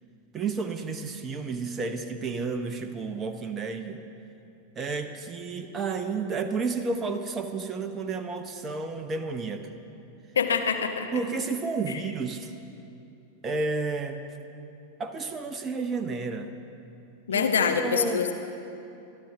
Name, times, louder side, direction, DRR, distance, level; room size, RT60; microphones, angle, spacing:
voice 1, 0.3-4.0 4.7-9.7 11.1-12.5 13.4-14.2 15.0-16.5 17.3-18.3, right 4 dB, 20° right, 7 dB, 0.8 m, -31 dB
voice 2, 10.3-11.1 17.3-18.3, left 6 dB, 65° left, 4 dB, 1.1 m, -25 dB
24.5 x 12.0 x 3.6 m, 2.7 s
figure-of-eight pair, 90°, 0 cm